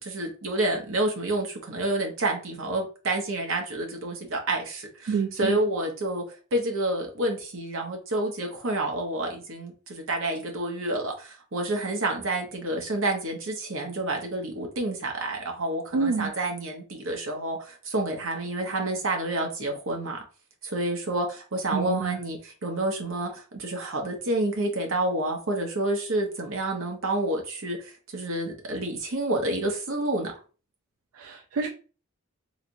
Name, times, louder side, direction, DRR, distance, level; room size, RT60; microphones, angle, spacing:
voice 1, 0.0-6.2 6.5-20.2 20.6-30.3, right 1 dB, 70° right, 2 dB, 0.9 m, -29 dB
voice 2, 5.1-5.6 15.9-16.3 21.7-22.2 31.1-31.7, right 5 dB, 85° right, 4 dB, 0.4 m, -27 dB
3.2 x 2.9 x 2.6 m, 0.36 s
head